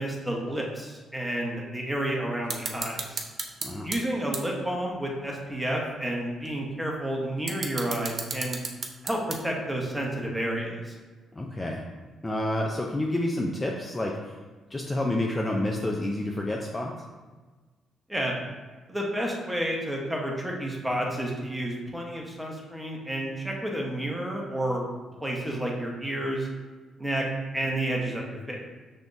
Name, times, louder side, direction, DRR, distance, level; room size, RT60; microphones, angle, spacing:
voice 1, 0.0-3.2 3.8-8.6 9.0-10.9 18.1-18.3 18.9-24.9 25.2-26.5 27.0-27.2 27.5-28.7, right 1 dB, 5° right, -1 dB, 1.0 m, -30 dB
sound 1, 2.5-4.0 4.3-4.4 5.1-5.2 6.5-6.6 7.2-9.7, right 4 dB, 50° right, 0.6 m, -33 dB
voice 2, 11.3-11.8 12.2-14.3 14.7-16.9, left 1 dB, 20° left, 0 dB, 0.5 m, -29 dB
5.8 x 3.4 x 2.6 m, 1.4 s
cardioid pair, 90°, 0 cm